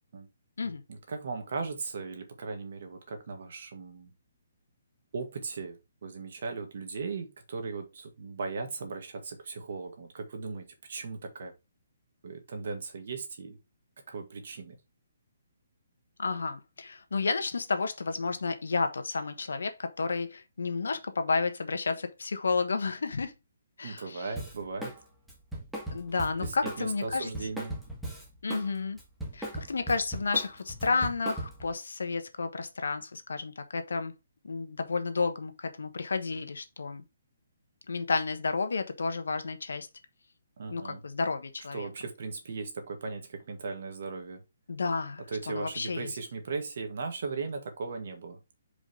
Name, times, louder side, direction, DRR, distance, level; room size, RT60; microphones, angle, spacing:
voice 1, 0.9-4.1 5.1-11.5 12.2-13.6 14.1-14.8 23.8-25.0 26.4-27.8 40.6-41.0 41.7-44.4 45.3-48.4, right 4 dB, 60° right, 1.9 m, -37 dB
voice 2, 16.2-23.3 23.8-24.3 25.9-27.3 28.4-29.0 29.3-34.1 34.4-37.0 37.9-39.9 40.7-41.9 44.7-46.1, left 4 dB, 90° left, 1.3 m, -31 dB
Drum kit, 24.4-25.0 25.3-28.7 29.0-31.7, right 1 dB, 5° right, 1.6 m, -38 dB
5.1 x 3.9 x 4.9 m
hypercardioid pair, 165°, 0 cm